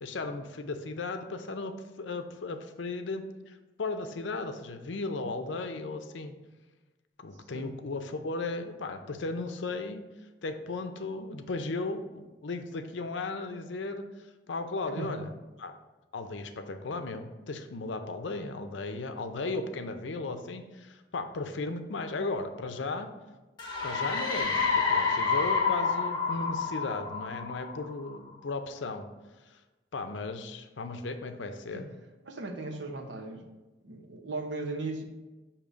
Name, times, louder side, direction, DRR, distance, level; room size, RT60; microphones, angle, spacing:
voice 1, 0.0-6.3 7.2-10.0 10.4-14.0 14.5-15.3 15.6-15.7 16.1-23.1 23.8-29.1 29.5-29.6 29.9-31.9, left 3 dB, 90° left, 7 dB, 0.6 m, -36 dB
voice 2, 14.8-15.2 31.7-31.8 32.2-33.5 33.8-35.0, right 3 dB, 85° right, 2 dB, 0.8 m, -37 dB
sound 1, 23.6-28.1, left 5 dB, 25° left, 0.8 m, -29 dB
6.9 x 2.9 x 4.9 m, 1.1 s
head